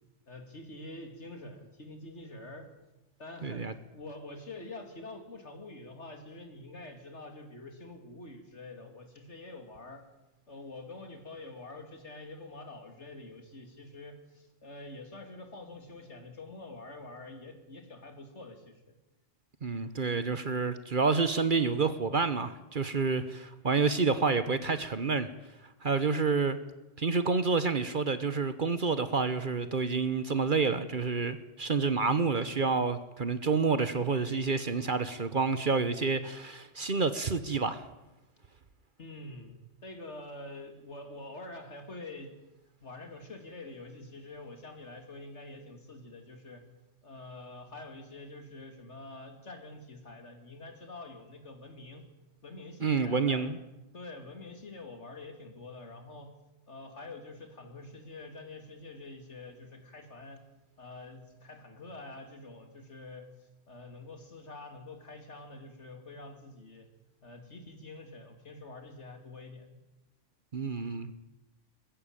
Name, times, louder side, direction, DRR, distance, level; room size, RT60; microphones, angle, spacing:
voice 1, 0.3-2.7 3.2-10.0 10.5-18.9 39.0-42.3 42.8-46.6 47.0-52.0 52.4-53.5 53.9-56.3 56.7-60.4 60.8-63.3 63.7-66.9 67.2-69.8, left 2 dB, 65° left, 3.0 m, -46 dB
voice 2, 3.4-3.7 19.6-25.3 25.8-26.6 27.0-37.8 52.8-53.6 70.5-71.1, right 4 dB, 45° right, 1.1 m, -29 dB
21.0 x 14.5 x 8.9 m
omnidirectional pair, 1.3 m